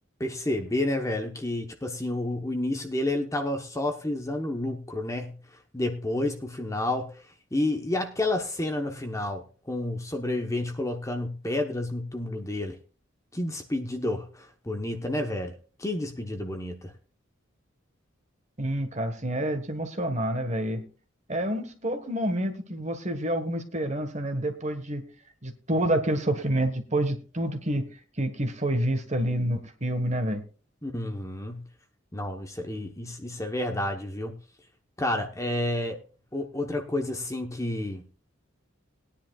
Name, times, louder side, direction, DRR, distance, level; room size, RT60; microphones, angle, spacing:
voice 1, 0.2-5.4 5.7-7.1 7.5-12.8 13.3-15.5 15.8-16.9 30.8-31.6 32.1-34.4 35.0-36.0 36.3-38.0, left 1 dB, 15° left, 4 dB, 1.0 m, -30 dB
voice 2, 18.6-20.9 21.3-25.0 25.4-27.8 28.2-30.4, right 1 dB, 35° right, 6 dB, 1.4 m, -28 dB
20.0 x 10.0 x 2.4 m, 0.36 s
head